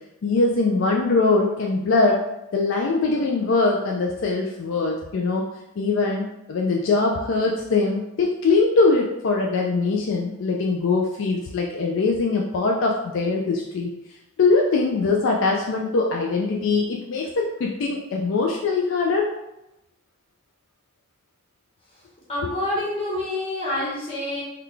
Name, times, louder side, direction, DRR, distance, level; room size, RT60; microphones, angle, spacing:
voice 1, 0.2-2.2 2.5-5.5 5.8-13.9 14.4-19.3, left 3 dB, 60° left, 0 dB, 0.3 m, -22 dB
voice 2, 22.3-24.4, left 1 dB, 25° left, -6 dB, 1.0 m, -27 dB
3.7 x 2.3 x 3.2 m, 0.92 s
head